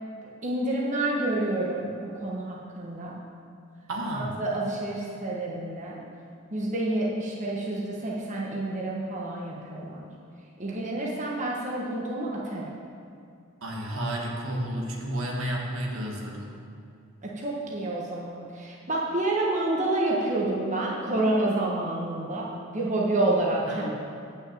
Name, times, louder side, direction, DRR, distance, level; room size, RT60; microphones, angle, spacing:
voice 1, 0.4-3.1 4.1-6.0 6.5-10.0 10.6-12.6 17.2-23.9, right 2 dB, 35° right, -4 dB, 1.3 m, -28 dB
voice 2, 3.9-4.4 13.6-16.5 23.7-23.9, right 1 dB, 70° right, -1 dB, 1.6 m, -31 dB
9.1 x 6.2 x 7.3 m, 2.4 s
head